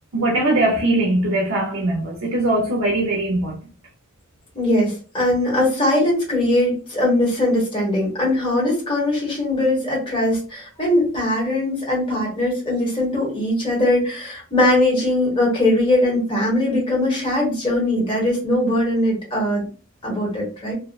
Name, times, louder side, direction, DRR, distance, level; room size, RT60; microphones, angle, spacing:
voice 1, 0.1-3.6, right 1 dB, 70° right, 0.5 m, -20 dB
voice 2, 4.5-19.7 20.0-20.7, left 1 dB, 25° left, 1.1 m, -20 dB
2.6 x 2.1 x 2.2 m
head